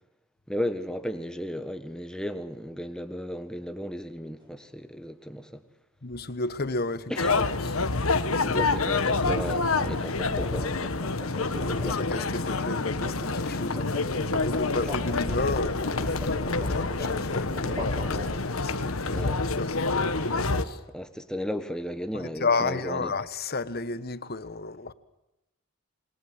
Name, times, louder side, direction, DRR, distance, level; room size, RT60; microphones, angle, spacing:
voice 1, 0.5-5.6 7.1-7.3 8.4-10.7 11.4-12.0 14.3-14.7 19.1-19.4 20.9-23.1, equal, 5° left, 1.5 m, -35 dB
sound 1, 4.4-4.7 9.8-18.7, left 2 dB, 25° right, 6.6 m, -41 dB
voice 2, 6.0-7.1 7.6-7.8 8.4-8.7 12.0-13.9 14.4-20.8 22.1-24.9, left 3 dB, 45° left, 1.3 m, -32 dB
sound 2, 7.2-20.6, left 3 dB, 85° left, 1.5 m, -27 dB
27.0 x 22.0 x 7.9 m
head